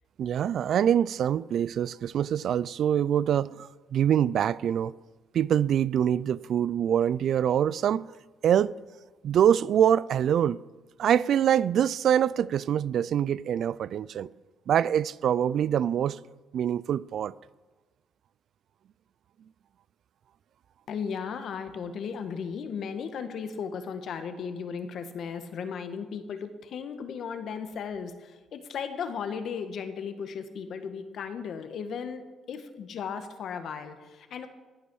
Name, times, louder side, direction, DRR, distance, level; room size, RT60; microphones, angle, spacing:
voice 1, 0.2-4.9 5.3-8.1 8.4-8.8 9.2-10.6 11.0-14.3 14.7-16.2 16.5-17.3, right 9 dB, 65° right, 0.3 m, -24 dB
voice 2, 20.9-32.2 32.5-34.5, left 6 dB, 65° left, 1.4 m, -36 dB
14.5 x 8.4 x 6.2 m
cardioid pair, 90°, 0 cm